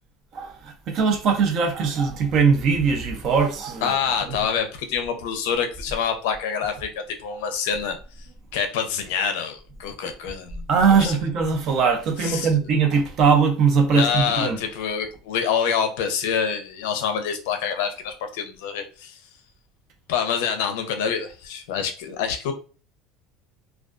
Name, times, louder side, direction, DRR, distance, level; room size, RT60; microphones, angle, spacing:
voice 1, 0.3-3.9 4.2-4.4 10.7-14.6, right 5 dB, 40° right, 0.5 m, -20 dB
voice 2, 3.8-6.9 7.2-8.3 8.5-10.7 11.0-11.1 12.2-12.5 13.9-19.2 20.1-22.5, left 7 dB, 90° left, 0.5 m, -26 dB
2.3 x 2.2 x 2.4 m
cardioid pair, 175°, 0 cm